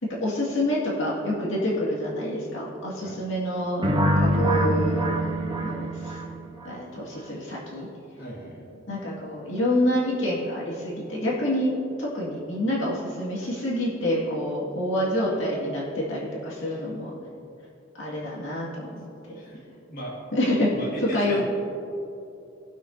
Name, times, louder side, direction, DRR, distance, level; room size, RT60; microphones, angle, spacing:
voice 1, 0.2-5.1 5.6-6.2 6.6-7.9 8.9-11.7 12.0-17.2 18.0-19.4 20.3-20.7 21.0-21.4, left 1 dB, 80° left, -5 dB, 2.1 m, -27 dB
sound 1, 3.8-6.7, right 1 dB, 25° right, 0.8 m, -24 dB
voice 2, 8.2-8.7 16.6-16.8 17.4-17.5 19.4-19.6 19.9-20.2 20.7-21.4, equal, 50° left, -5 dB, 2.0 m, -38 dB
18.5 x 6.2 x 2.8 m, 2.7 s
head